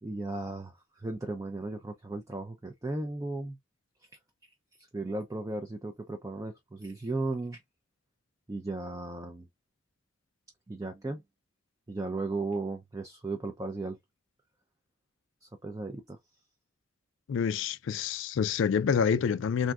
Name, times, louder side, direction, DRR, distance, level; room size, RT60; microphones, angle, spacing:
voice 1, 0.0-3.6 4.9-7.6 8.5-9.5 10.7-11.2 11.9-14.0 15.4-16.2, right 2 dB, 15° right, 0.4 m, -35 dB
voice 2, 17.3-19.7, left 6 dB, 65° left, 0.3 m, -27 dB
3.5 x 2.6 x 2.3 m
head